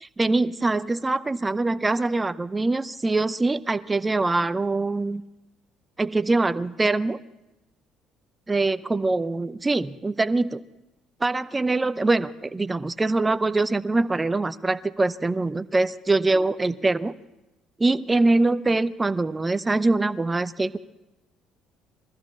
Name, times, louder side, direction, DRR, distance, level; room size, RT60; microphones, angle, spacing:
voice 1, 0.2-5.2 6.0-7.2 8.5-10.6 11.2-17.1 17.8-20.8, right 2 dB, 20° right, 15 dB, 0.6 m, -23 dB
20.0 x 14.5 x 4.3 m, 0.99 s
hypercardioid pair, 55°, 0 cm